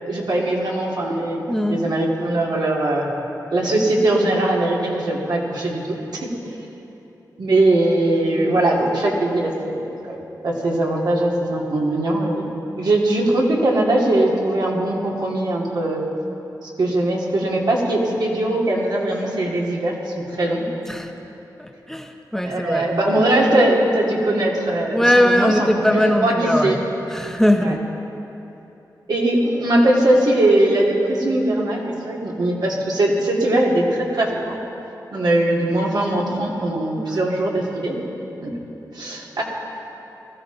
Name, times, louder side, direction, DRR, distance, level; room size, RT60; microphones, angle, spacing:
voice 1, 0.0-1.4 1.7-3.1 3.5-5.8 6.1-6.3 7.4-9.5 10.1-10.2 10.4-12.5 12.8-16.0 16.6-20.6 22.4-25.7 25.9-26.8 27.6-27.7 29.1-34.6 35.1-38.0 38.4-38.5 38.9-39.4, right 1 dB, 70° right, -3 dB, 2.6 m, -20 dB
voice 2, 1.5-1.8 20.9-21.1 21.6-22.9 24.9-26.8 27.1-27.9 37.0-37.1, equal, 5° left, 4 dB, 0.8 m, -20 dB
20.0 x 14.5 x 4.0 m, 3.0 s
wide cardioid pair, 90°, 7 cm